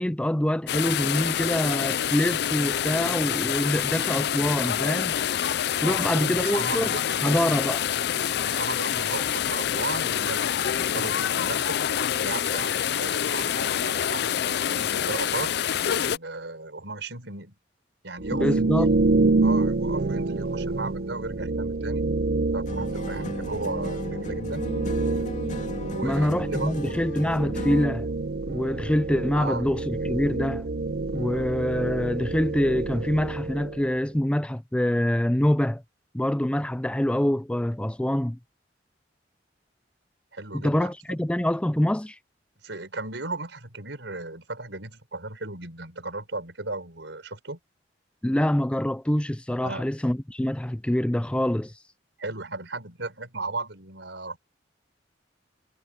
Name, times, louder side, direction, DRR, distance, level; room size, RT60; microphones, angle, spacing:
voice 1, 0.0-5.1 5.8-7.0 7.2-7.8 18.3-18.9 26.0-28.1 28.5-30.7 31.1-35.8 36.1-38.4 40.5-42.2 48.2-51.7, left 1 dB, 5° left, 0.4 m, -25 dB
sound 1, 0.7-16.2, left 9 dB, 60° left, 0.4 m, -26 dB
voice 2, 5.8-7.6 8.4-11.8 12.2-15.5 15.9-17.5 18.0-19.0 19.4-22.1 22.5-24.6 25.8-27.0 29.3-29.6 40.3-40.9 42.6-47.6 49.6-49.8 52.2-54.4, right 2 dB, 75° right, 5.2 m, -36 dB
sound 2, 18.2-34.0, right 3 dB, 55° right, 0.6 m, -27 dB
sound 3, 22.7-28.0, left 1 dB, 40° left, 2.5 m, -36 dB
head